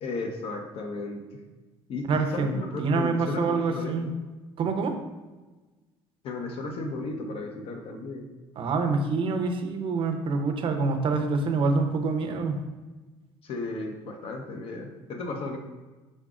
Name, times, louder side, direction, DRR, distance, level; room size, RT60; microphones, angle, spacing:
voice 1, 0.0-1.2 1.9-4.0 6.2-8.3 13.4-15.6, left 2 dB, 60° left, 3 dB, 0.8 m, -34 dB
voice 2, 2.1-2.5 2.8-4.1 4.6-5.0 8.6-12.6, right 4 dB, 55° right, 5 dB, 0.6 m, -26 dB
5.3 x 3.9 x 2.4 m, 1.2 s
cardioid pair, 90°, 11 cm